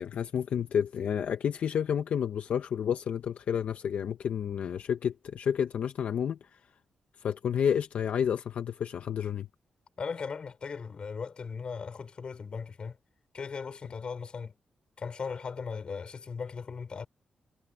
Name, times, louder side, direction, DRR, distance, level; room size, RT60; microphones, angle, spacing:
voice 1, 0.0-6.6 7.2-9.5, left 8 dB, 70° left, 0.8 m, -30 dB
voice 2, 10.0-13.0 13.3-14.6 15.0-17.1, left 5 dB, 45° left, 3.8 m, -38 dB
wide cardioid pair, 145°, 2 cm